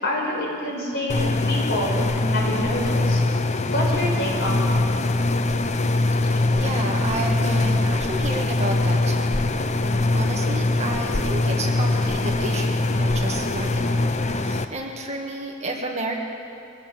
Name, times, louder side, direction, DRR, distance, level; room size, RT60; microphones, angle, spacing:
voice 1, 0.0-3.2 3.7-4.7, left 1 dB, 55° left, -2 dB, 5.5 m, -27 dB
sound 1, 1.1-14.6, left 2 dB, 35° left, 0.7 m, -22 dB
voice 2, 5.9-9.4 10.1-16.1, right 1 dB, 35° right, 0 dB, 2.0 m, -31 dB
23.5 x 16.5 x 7.2 m, 2.6 s
head